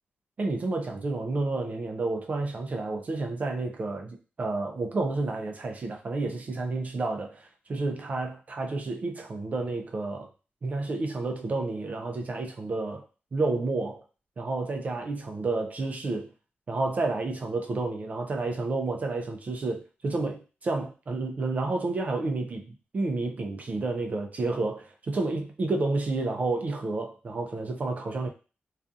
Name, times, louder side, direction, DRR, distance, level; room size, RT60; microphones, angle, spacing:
voice 1, 0.4-10.3 10.6-13.0 13.3-14.0 14.4-16.3 16.7-22.6 22.9-28.3, right 3 dB, 40° right, 0.4 m, -30 dB
2.6 x 2.3 x 2.4 m
wide cardioid pair, 135°, 4 cm